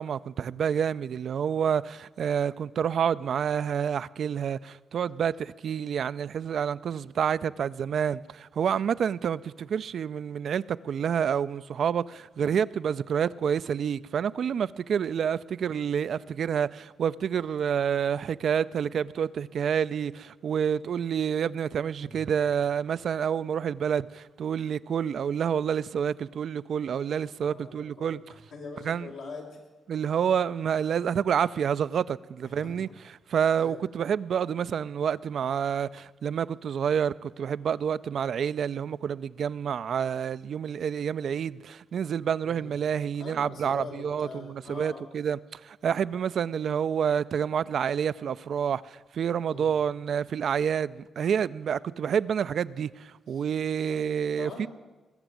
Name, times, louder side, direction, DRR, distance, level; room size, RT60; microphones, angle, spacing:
voice 1, 0.0-28.2 28.8-29.1 29.9-32.9 33.3-54.7, right 8 dB, 65° right, 0.4 m, -28 dB
voice 2, 27.4-28.1 28.5-29.6 32.4-32.7 33.6-33.8 42.4-42.7 43.2-45.1 49.5-49.7 53.3-53.4 53.9-54.0 54.4-54.7, left 4 dB, 85° left, 4.1 m, -43 dB
20.0 x 7.1 x 9.1 m
cardioid pair, 90°, 0 cm